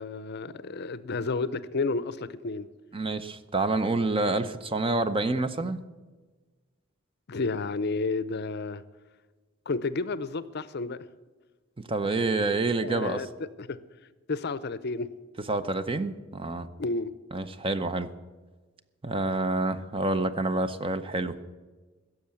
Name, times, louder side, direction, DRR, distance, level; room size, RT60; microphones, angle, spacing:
voice 1, 0.0-2.7 7.3-8.8 9.7-11.0 12.8-13.3 13.6-13.8 14.3-15.1 16.8-17.1, left 3 dB, 55° left, 0.6 m, -31 dB
voice 2, 2.9-5.8 11.8-13.2 15.5-16.7 17.3-18.1 19.0-21.4, right 2 dB, 25° right, 0.7 m, -28 dB
16.0 x 6.9 x 8.4 m
head